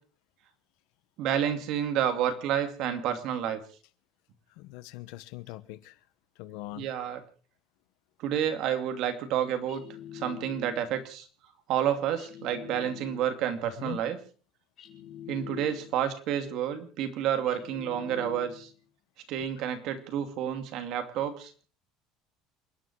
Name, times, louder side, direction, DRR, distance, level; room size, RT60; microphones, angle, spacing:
voice 1, 1.2-3.6 6.8-7.2 8.2-9.8 10.1-11.3 11.7-14.2 15.3-18.7 19.3-21.5, right 9 dB, 45° right, 7 dB, 2.6 m, -30 dB
voice 2, 4.6-6.0 6.4-6.9 13.8-14.0 19.6-19.7, left 17 dB, 65° left, 13 dB, 1.2 m, -42 dB
sound 1, 9.7-11.0 12.2-13.5 14.8-16.1 17.5-18.8, left 10 dB, 35° left, 4.7 m, -45 dB
28.5 x 10.0 x 4.8 m, 0.41 s
cardioid pair, 170°, 0 cm